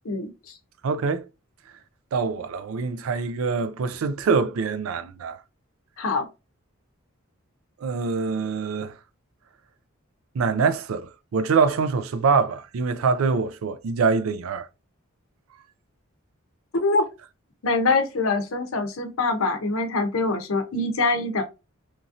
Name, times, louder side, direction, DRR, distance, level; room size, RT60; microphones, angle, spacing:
voice 1, 0.8-1.3 2.1-5.4 7.8-8.9 10.3-14.7, right 5 dB, 75° right, 0.4 m, -24 dB
voice 2, 16.7-17.0 17.6-21.4, left 3 dB, 75° left, 0.6 m, -24 dB
2.9 x 2.7 x 2.4 m
head